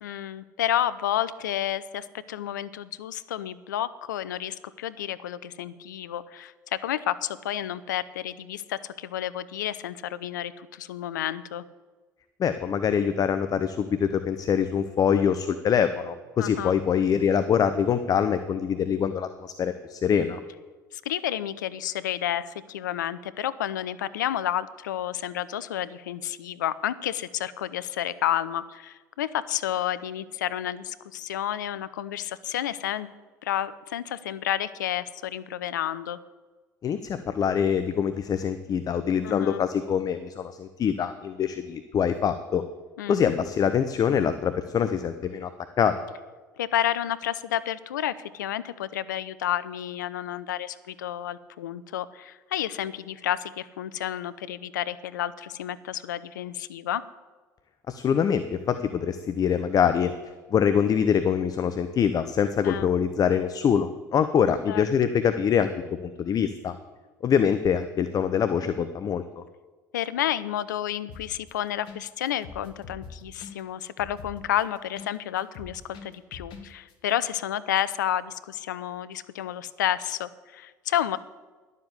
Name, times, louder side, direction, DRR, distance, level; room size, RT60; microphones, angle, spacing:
voice 1, 0.0-11.6 16.4-16.8 20.9-33.1 33.4-36.2 39.2-39.6 43.0-43.2 46.6-57.0 62.6-62.9 64.7-64.8 69.9-81.2, left 11 dB, 80° left, 16 dB, 0.5 m, -30 dB
voice 2, 12.4-20.4 36.8-42.6 43.1-45.5 45.8-46.0 57.9-60.1 60.5-65.7 66.0-66.7 67.2-69.4, left 7 dB, 40° left, 10 dB, 0.7 m, -24 dB
sound 1, 71.1-71.5 71.9-72.0 72.3-75.1 75.4-76.6 76.9-77.0, left 5 dB, 60° left, 1.8 m, -43 dB
11.5 x 7.4 x 8.1 m, 1.3 s
hypercardioid pair, 65°, 10 cm